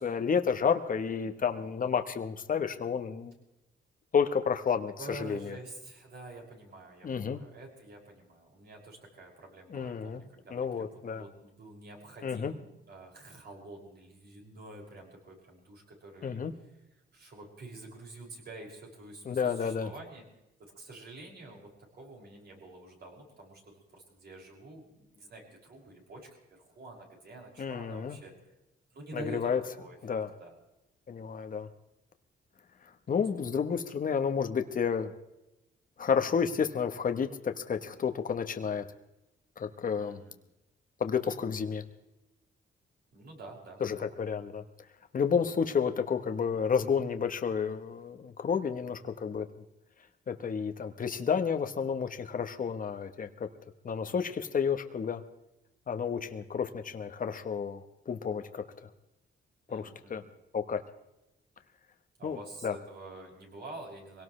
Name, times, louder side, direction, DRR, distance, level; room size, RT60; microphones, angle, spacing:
voice 1, 0.0-3.3 4.1-5.6 7.0-7.4 9.7-10.2 10.5-11.2 12.2-12.5 16.2-16.5 19.3-19.9 27.6-28.2 29.1-29.6 30.0-30.3 31.1-31.7 33.1-35.1 36.0-38.9 39.6-40.2 41.0-41.8 43.8-44.6 45.1-49.5 50.3-53.5 53.8-55.2 55.9-57.8 58.1-58.7 59.7-60.2 60.5-60.8 62.2-62.8, left 6 dB, 45° left, 7 dB, 1.1 m, -31 dB
voice 2, 5.0-16.4 17.1-20.2 20.6-28.3 28.9-30.0 30.4-30.6 40.0-40.4 43.1-44.1 54.0-54.3 59.7-60.3 62.2-64.2, right 2 dB, 55° right, -2 dB, 6.2 m, -48 dB
24.0 x 18.0 x 3.3 m, 0.93 s
cardioid pair, 105°, 20 cm